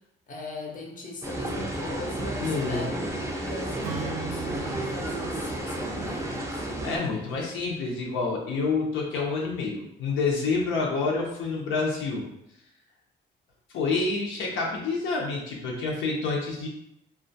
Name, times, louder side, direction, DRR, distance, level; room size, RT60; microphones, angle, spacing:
voice 1, 0.3-6.7, left 3 dB, 40° left, 0 dB, 0.6 m, -40 dB
sound 1, 1.2-7.0, right 1 dB, 15° right, 0.4 m, -32 dB
voice 2, 2.4-2.9 6.8-12.3 13.7-16.7, left 4 dB, 80° left, -2 dB, 0.6 m, -28 dB
Acoustic guitar / Strum, 3.8-7.3, right 6 dB, 75° right, 0.4 m, -39 dB
2.3 x 2.2 x 2.6 m, 0.78 s
cardioid pair, 90°, 20 cm